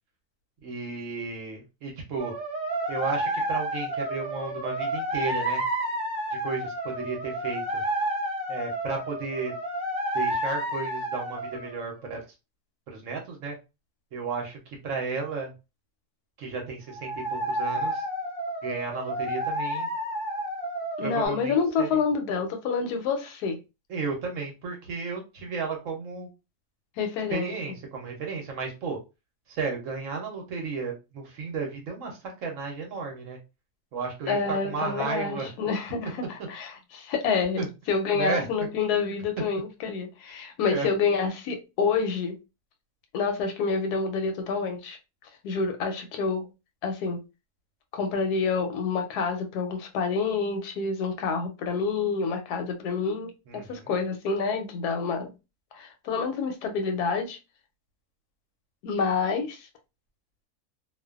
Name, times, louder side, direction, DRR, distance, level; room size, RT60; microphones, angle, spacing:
voice 1, 0.6-2.3 2.9-5.6 6.3-7.8 8.5-9.5 10.1-12.2 12.9-13.5 14.1-15.5 16.4-18.0 18.6-19.9 21.0-22.0 23.9-26.3 27.3-29.0 29.5-33.4 33.9-35.5 36.4-36.5 37.6-37.7 38.1-38.7 40.6-40.9 53.5-53.9, right 4 dB, 65° right, 0.9 m, -33 dB
sound 1, 2.2-12.0 16.9-21.3, right 1 dB, 10° right, 0.4 m, -31 dB
voice 2, 21.0-23.6 27.0-27.5 34.3-37.6 37.9-42.4 43.1-45.0 45.4-46.5 46.8-47.2 47.9-55.3 55.7-57.4 58.8-59.7, left 5 dB, 85° left, 1.1 m, -28 dB
2.5 x 2.2 x 2.3 m
omnidirectional pair, 1.6 m